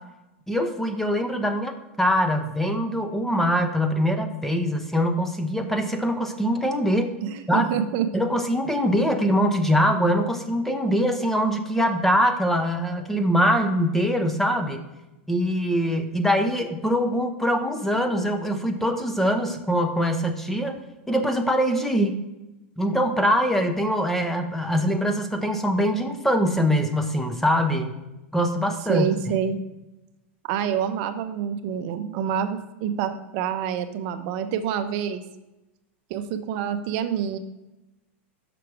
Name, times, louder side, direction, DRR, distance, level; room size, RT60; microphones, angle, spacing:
voice 1, 0.5-7.1 7.5-7.7 8.1-14.8 15.3-20.8 21.1-22.1 22.8-27.9 28.3-29.1, equal, 5° left, 6 dB, 0.7 m, -23 dB
voice 2, 7.2-8.1 28.9-29.6 30.4-35.2 36.1-37.4, right 8 dB, 50° right, 8 dB, 0.6 m, -27 dB
6.0 x 5.9 x 4.7 m, 0.98 s
hypercardioid pair, 125°, 7 cm